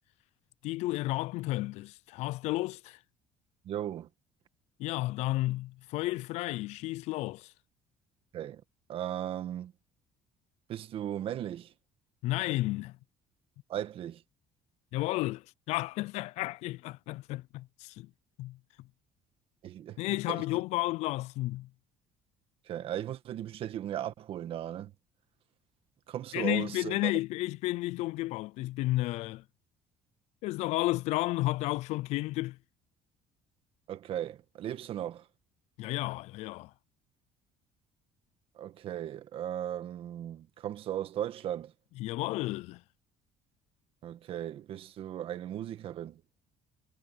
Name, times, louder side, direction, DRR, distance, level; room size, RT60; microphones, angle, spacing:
voice 1, 0.6-3.0 4.8-7.5 12.2-13.0 14.9-18.1 18.4-18.6 20.0-21.7 26.3-29.4 30.4-32.6 35.8-36.7 42.0-42.8, left 18 dB, 70° left, 0.4 m, -32 dB
voice 2, 3.6-4.1 8.3-8.6 8.9-9.7 10.7-11.7 13.7-14.2 19.6-20.4 22.7-24.9 26.1-27.1 33.9-35.2 38.6-41.7 44.0-46.2, right 11 dB, 50° right, 1.7 m, -37 dB
cardioid pair, 150°, 12 cm